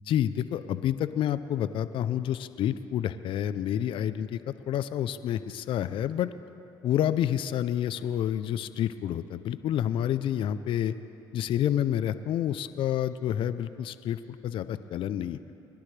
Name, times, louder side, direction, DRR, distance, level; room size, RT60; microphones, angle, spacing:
voice 1, 0.1-4.4 4.7-6.3 6.8-10.9 11.3-15.4, left 10 dB, 65° left, 13 dB, 0.5 m, -29 dB
22.0 x 11.5 x 3.3 m, 2.9 s
supercardioid pair, 65°, 9 cm